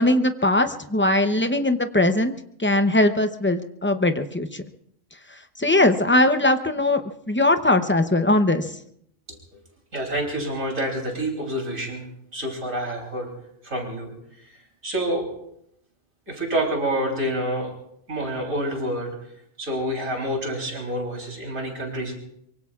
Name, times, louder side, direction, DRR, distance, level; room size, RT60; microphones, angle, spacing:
voice 1, 0.0-4.6 5.6-7.0 7.3-8.7, left 1 dB, 15° left, 8 dB, 0.5 m, -20 dB
voice 2, 9.9-12.1 12.3-13.3 13.6-14.1 14.8-15.2 16.3-17.7 18.1-19.1 19.6-22.1, right 1 dB, 75° right, 0 dB, 3.9 m, -27 dB
24.0 x 23.5 x 2.4 m, 0.74 s
omnidirectional pair, 1.4 m